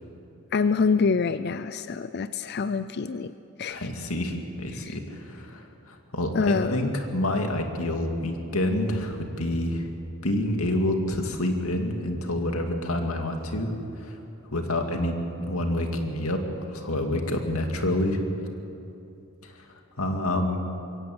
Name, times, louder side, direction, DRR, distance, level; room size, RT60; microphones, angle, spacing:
voice 1, 0.5-3.3 3.6-3.9 4.8-5.0 6.3-6.9, left 5 dB, 50° left, 12 dB, 0.4 m, -26 dB
voice 2, 3.7-9.9 10.2-13.7 14.0-14.2 14.5-16.4 16.7-18.2 19.4-19.7 20.0-20.6, left 1 dB, 80° left, 4 dB, 2.3 m, -28 dB
22.5 x 17.0 x 8.0 m, 2.8 s
head